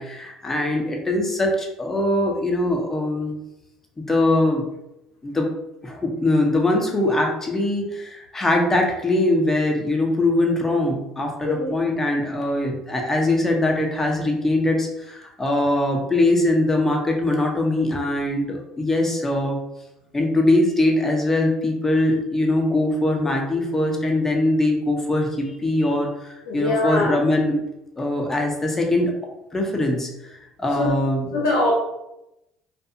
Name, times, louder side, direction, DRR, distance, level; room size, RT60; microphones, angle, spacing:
voice 1, 0.0-3.3 4.1-4.7 5.2-5.5 5.8-19.6 20.1-27.6 28.0-29.1 29.5-31.3, left 1 dB, 20° left, 0 dB, 0.7 m, -22 dB
voice 2, 26.5-27.2 30.8-30.9 31.3-31.7, left 2 dB, 85° left, -5 dB, 0.6 m, -22 dB
2.5 x 2.3 x 2.6 m, 0.89 s
hypercardioid pair, 65°, 2 cm